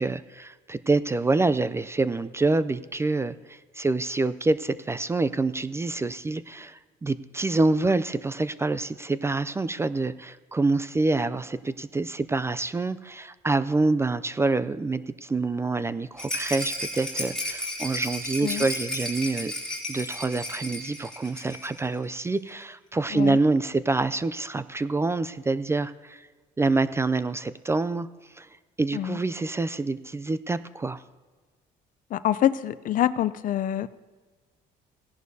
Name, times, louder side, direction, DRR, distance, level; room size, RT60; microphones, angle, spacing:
voice 1, 0.0-19.5 19.9-26.3 26.6-28.1 28.3-28.5 28.8-31.0, right 3 dB, 15° right, 15 dB, 0.3 m, -26 dB
Rattle, 16.2-21.9 22.1-22.2 22.5-22.6, left 1 dB, 5° left, 3.0 m, -33 dB
voice 2, 32.1-33.9, left 11 dB, 55° left, 16 dB, 0.5 m, -25 dB
17.0 x 11.0 x 2.7 m, 1.4 s
cardioid pair, 110°, 17 cm